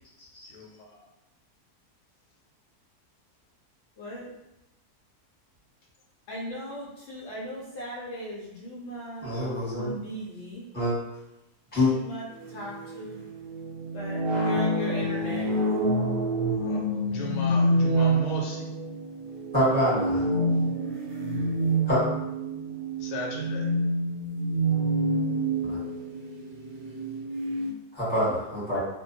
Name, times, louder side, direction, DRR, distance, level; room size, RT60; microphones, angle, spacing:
voice 1, 0.5-1.0 9.5-9.6 16.6-16.8 17.1-18.7 23.0-23.7, left 1 dB, 85° left, 0 dB, 1.2 m, -36 dB
voice 2, 4.0-4.3 6.3-9.3 9.8-10.6 11.9-13.2 13.9-15.5, equal, 70° left, -6 dB, 0.7 m, -38 dB
voice 3, 9.2-9.9 10.7-10.9 11.7-11.9 19.5-20.2 21.9-22.0 25.6-25.8 27.9-28.8, left 1 dB, 5° left, -9 dB, 0.8 m, -25 dB
sound 1, 12.3-27.7, right 1 dB, 70° right, 0.5 m, -27 dB
2.6 x 2.1 x 2.6 m, 0.89 s
omnidirectional pair, 1.7 m